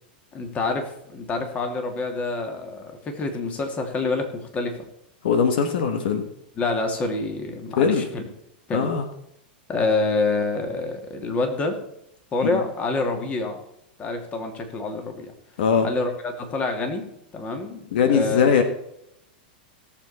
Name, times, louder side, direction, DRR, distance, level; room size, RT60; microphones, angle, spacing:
voice 1, 0.3-4.8 6.6-8.2 8.7-8.9 9.7-11.8 12.3-13.6 14.0-15.3 15.8-17.1 17.3-18.4, left 3 dB, 25° left, 4 dB, 2.5 m, -27 dB
voice 2, 5.2-6.2 7.8-8.0 8.7-9.1 12.5-12.6 15.6-15.9 17.9-18.6, left 6 dB, 70° left, 8 dB, 1.5 m, -20 dB
17.5 x 7.2 x 4.3 m, 0.78 s
hypercardioid pair, 125°, 5 cm